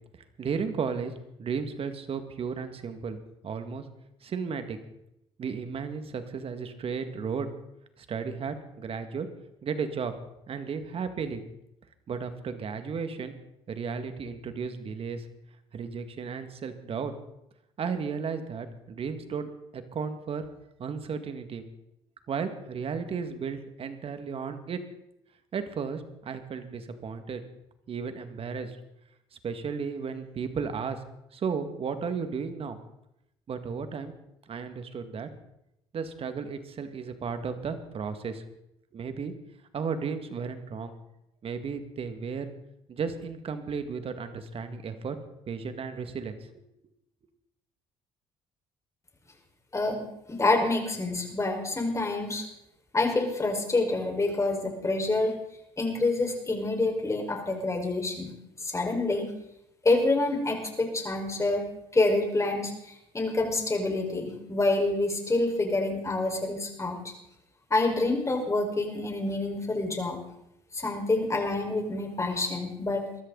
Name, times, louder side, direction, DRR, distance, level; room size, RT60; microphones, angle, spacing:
voice 1, 0.4-1.1 1.4-3.2 3.4-3.8 4.2-4.8 5.4-7.5 8.0-9.3 9.6-10.1 10.5-11.4 12.1-13.3 13.7-15.2 15.7-17.1 17.8-20.4 20.8-21.6 22.3-24.8 25.5-27.4 27.9-28.8 29.4-31.0 31.3-32.8 33.5-34.1 34.5-35.3 35.9-38.4 38.9-39.3 39.7-41.0 41.4-42.5 42.9-45.2 45.5-46.6, right 6 dB, 50° right, 9 dB, 2.1 m, -34 dB
voice 2, 49.7-52.4 52.9-55.3 55.8-58.3 58.6-59.2 59.8-62.7 63.1-67.0 67.7-70.2 70.7-73.2, left 2 dB, 25° left, 2 dB, 5.1 m, -27 dB
22.5 x 13.5 x 4.1 m, 0.83 s
supercardioid pair, 65°, 13 cm